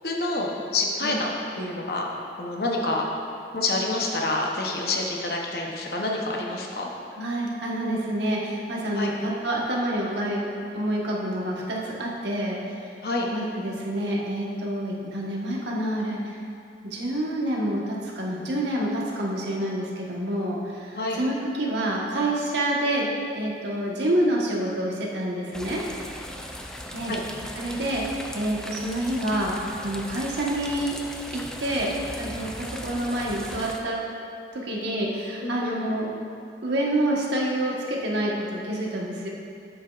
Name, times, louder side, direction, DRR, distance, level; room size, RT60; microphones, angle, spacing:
voice 1, 0.0-1.3 1.6-2.1 2.4-3.1 3.5-6.9 8.9-9.1 13.0-13.3 20.9-21.2 27.1-27.2 35.4-35.8, left 2 dB, 60° left, -1 dB, 0.8 m, -27 dB
voice 2, 7.2-10.5 10.7-12.6 13.3-16.2 16.8-23.1 23.4-25.8 26.9-27.1 27.6-28.0 28.3-31.0 31.3-31.9 32.2-34.0 34.5-36.1 36.6-39.3, right 1 dB, 80° right, -3 dB, 1.3 m, -27 dB
sound 1, 25.5-33.8, equal, 5° left, 0.3 m, -38 dB
9.5 x 7.7 x 2.4 m, 2.4 s
head